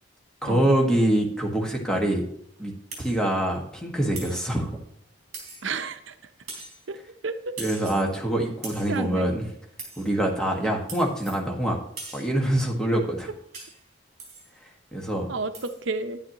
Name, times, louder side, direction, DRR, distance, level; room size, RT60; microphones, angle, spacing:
voice 1, 0.4-2.2 2.6-2.7 3.0-4.8 7.6-9.5 10.0-11.8 12.1-13.3 14.9-15.3, right 1 dB, 5° left, 0 dB, 1.5 m, -25 dB
sound 1, 2.9-3.2 4.1-4.6 5.3-5.8 6.5-6.8 7.6-8.1 8.6-9.0 9.8-10.1 10.9-11.4 12.0-12.4 13.5-13.8 14.2-14.5 15.5-15.8, right 3 dB, 35° right, 3.8 m, -41 dB
voice 2, 5.6-6.1 6.9-7.0 7.2-7.5 8.9-9.3 15.3-16.2, right 3 dB, 75° right, 9 dB, 0.7 m, -31 dB
10.5 x 9.9 x 2.9 m, 0.71 s
head